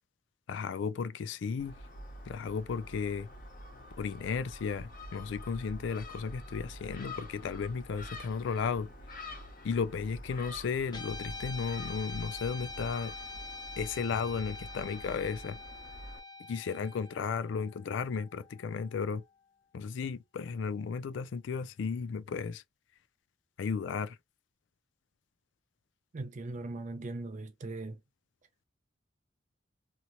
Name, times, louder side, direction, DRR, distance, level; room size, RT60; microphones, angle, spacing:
voice 1, 0.5-1.8 2.3-3.3 4.0-8.9 9.6-13.2 13.8-15.6 16.5-19.2 19.7-22.6 23.6-24.2, left 5 dB, 65° left, 0.3 m, -34 dB
Gull seagull, 1.6-16.2, left 1 dB, 45° left, 1.2 m, -47 dB
Guitar, 10.9-19.4, left 3 dB, 20° left, 0.6 m, -45 dB
voice 2, 26.1-28.0, right 2 dB, 40° right, 0.4 m, -39 dB
2.9 x 2.9 x 2.5 m
head